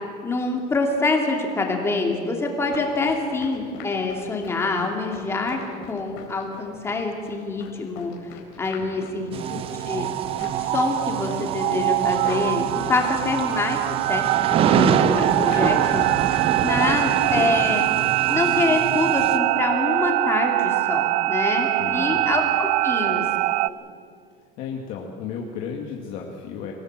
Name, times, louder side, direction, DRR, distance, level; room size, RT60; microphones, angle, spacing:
voice 1, 0.2-5.6 5.9-9.6 9.9-10.1 10.4-16.0 16.6-17.8 18.3-23.3, left 3 dB, 15° left, 1 dB, 2.7 m, -26 dB
Run, 2.6-10.1 10.4-10.8 11.1-13.2 13.8-14.4 14.6-14.9 15.4-16.5 16.8-17.7 18.0-18.2 18.6-18.9 19.2-19.4 19.8-20.0 20.4-20.5, left 6 dB, 80° left, 4.2 m, -42 dB
voice 2, 8.8-9.4 15.6-16.0 21.8-22.3 24.6-26.7, left 6 dB, 60° left, 0 dB, 2.0 m, -35 dB
sound 1, 9.3-19.4, right 8 dB, 35° right, 0.9 m, -27 dB
sound 2, 9.4-23.7, right 18 dB, 55° right, 0.5 m, -23 dB
25.0 x 16.0 x 7.5 m, 2.4 s
cardioid pair, 165°, 17 cm